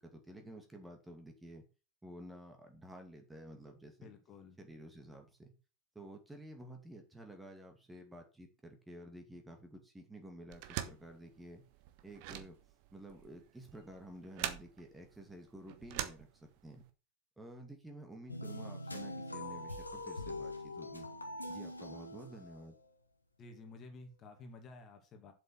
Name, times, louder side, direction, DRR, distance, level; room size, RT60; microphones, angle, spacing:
voice 1, 0.0-1.7 2.0-4.1 4.6-5.5 5.9-11.7 12.0-12.6 12.9-16.9 17.4-21.1 21.5-22.8, right 1 dB, 5° right, 4 dB, 2.2 m, -52 dB
voice 2, 4.0-4.6 23.4-25.3, left 3 dB, 30° left, 5 dB, 2.3 m, -52 dB
sound 1, 10.5-16.8, right 11 dB, 45° right, 1.3 m, -44 dB
sound 2, 18.3-22.9, left 1 dB, 80° left, 1.4 m, -43 dB
7.8 x 7.1 x 6.0 m, 0.33 s
figure-of-eight pair, 90°, 0 cm